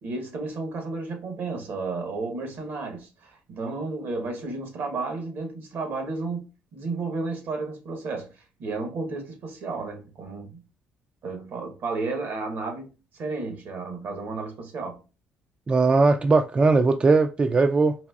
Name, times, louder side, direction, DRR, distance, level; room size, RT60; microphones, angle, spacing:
voice 1, 0.0-8.3 8.6-10.6 11.2-12.9 13.1-15.0, right 3 dB, 65° right, 1.1 m, -32 dB
voice 2, 15.7-18.0, right 3 dB, 30° right, 0.3 m, -19 dB
4.0 x 2.5 x 2.4 m
supercardioid pair, 70°, 4 cm